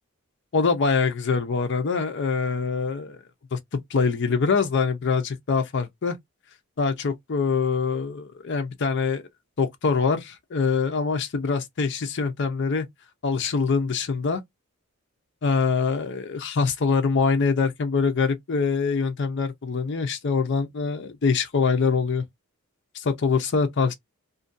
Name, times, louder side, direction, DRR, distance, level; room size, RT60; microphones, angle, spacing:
voice 1, 0.5-3.2 3.5-6.2 6.8-9.2 9.6-12.9 13.2-14.4 15.4-22.2 22.9-23.9, left 5 dB, 50° left, 0.5 m, -24 dB
2.5 x 2.1 x 2.5 m
head